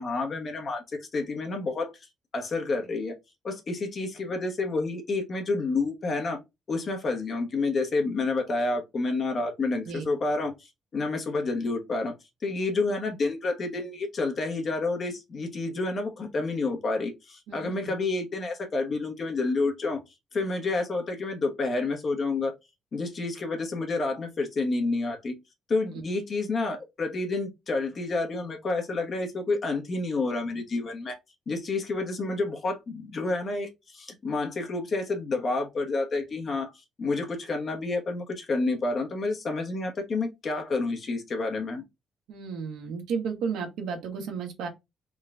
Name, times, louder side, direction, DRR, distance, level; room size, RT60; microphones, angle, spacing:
voice 1, 0.0-1.9 2.3-3.1 3.4-6.4 6.7-12.1 12.4-20.0 20.3-22.5 22.9-25.3 25.7-31.2 31.5-36.7 37.0-41.8, left 3 dB, 45° left, 1.2 m, -29 dB
voice 2, 42.3-44.7, right 6 dB, 90° right, 1.3 m, -33 dB
3.7 x 2.4 x 3.3 m
cardioid pair, 90°, 0 cm